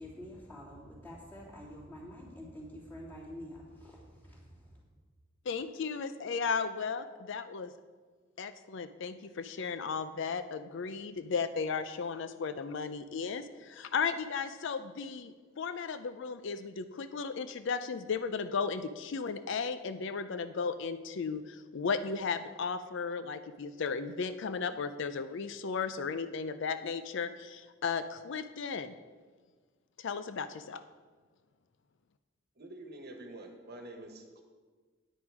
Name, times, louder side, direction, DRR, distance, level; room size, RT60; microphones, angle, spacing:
voice 1, 0.0-4.8, equal, 10° left, -6 dB, 3.1 m, -47 dB
voice 2, 5.5-7.7 8.4-28.9 30.0-30.8, left 5 dB, 65° left, 11 dB, 0.5 m, -35 dB
voice 3, 32.6-34.4, right 1 dB, 55° right, 3 dB, 1.3 m, -47 dB
9.7 x 9.2 x 4.8 m, 1.5 s
head